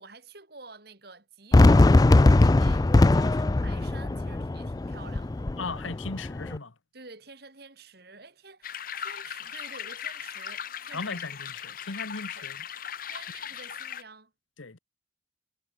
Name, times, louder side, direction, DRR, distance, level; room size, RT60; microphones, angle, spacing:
voice 1, 0.0-5.5 6.9-11.2 12.3-12.5 13.1-14.3, right 4 dB, 55° right, 3.3 m, -49 dB
Fireworks, 1.5-6.6, left 2 dB, 20° left, 0.3 m, -20 dB
voice 2, 5.6-6.7 10.9-12.6 14.6-14.8, left 3 dB, 90° left, 1.4 m, -37 dB
sound 1, 8.6-14.0, left 9 dB, 45° left, 0.9 m, -38 dB
head